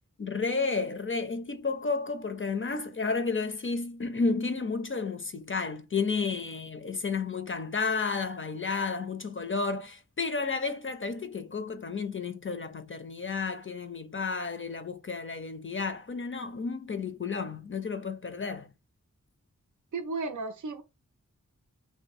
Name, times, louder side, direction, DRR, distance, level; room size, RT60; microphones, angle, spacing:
voice 1, 0.2-18.7, left 4 dB, 40° left, 0.5 m, -32 dB
voice 2, 19.9-20.8, right 3 dB, 70° right, 0.5 m, -34 dB
2.6 x 2.6 x 4.1 m
wide cardioid pair, 55°, 32 cm